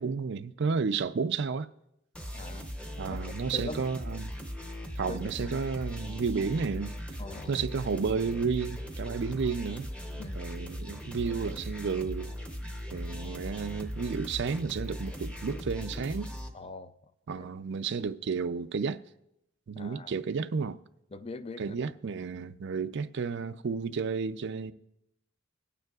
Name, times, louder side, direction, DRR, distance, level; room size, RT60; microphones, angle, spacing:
voice 1, 0.0-1.7 3.0-4.3 5.0-6.9 7.5-9.9 10.4-12.3 12.9-16.3 17.3-19.0 19.7-20.8 21.6-24.7, right 5 dB, 55° right, 0.4 m, -32 dB
sound 1, 2.1-16.5, equal, 5° left, 0.8 m, -39 dB
voice 2, 2.3-2.7 3.2-3.8 5.1-5.5 7.2-7.5 10.2-10.5 16.5-16.9 17.4-17.5 19.8-20.1 21.1-21.8, left 3 dB, 25° left, 0.4 m, -42 dB
20.5 x 9.1 x 2.4 m
head